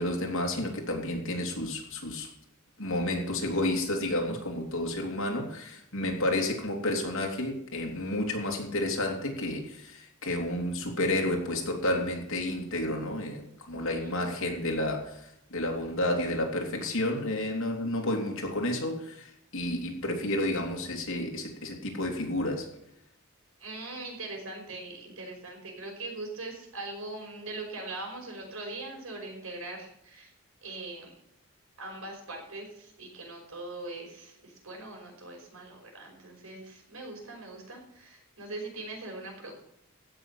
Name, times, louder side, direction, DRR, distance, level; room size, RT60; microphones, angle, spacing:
voice 1, 0.0-2.3 2.8-22.7, left 1 dB, 65° left, 1 dB, 3.0 m, -31 dB
voice 2, 13.7-14.3 23.6-30.3 30.6-31.1 31.8-39.5, right 2 dB, 75° right, 1 dB, 5.4 m, -41 dB
15.5 x 6.5 x 7.3 m, 0.78 s
head